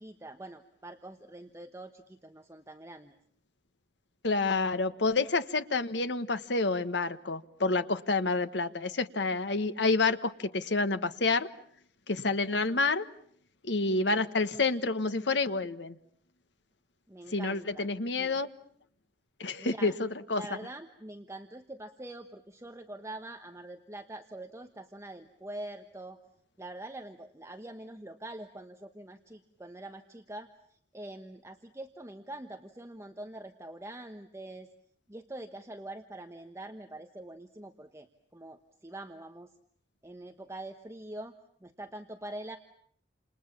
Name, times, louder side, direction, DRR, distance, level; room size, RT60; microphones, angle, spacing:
voice 1, 0.0-3.2 17.1-17.9 19.6-20.0 20.3-26.2 26.6-34.7 35.1-39.5 40.0-41.4 41.6-42.6, right 1 dB, 15° right, 6 dB, 1.1 m, -44 dB
voice 2, 4.2-11.5 12.1-13.0 13.6-16.0 17.3-18.5 19.4-20.4, left 3 dB, 70° left, 11 dB, 1.3 m, -28 dB
29.0 x 27.5 x 7.2 m, 0.64 s
head